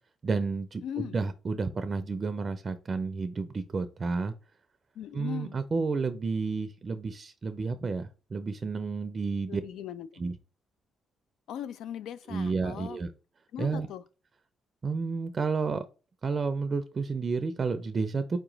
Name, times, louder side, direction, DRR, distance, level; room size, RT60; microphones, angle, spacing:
voice 1, 0.2-4.3 5.1-9.6 10.2-10.3 12.3-13.1 13.6-13.9 14.8-15.8 16.2-18.4, right 4 dB, 40° right, 0.4 m, -31 dB
voice 2, 0.8-1.2 5.0-5.6 9.5-10.2 11.5-13.0 13.5-14.0, left 10 dB, 80° left, 0.3 m, -39 dB
4.4 x 2.9 x 3.8 m
cardioid pair, 90°, 0 cm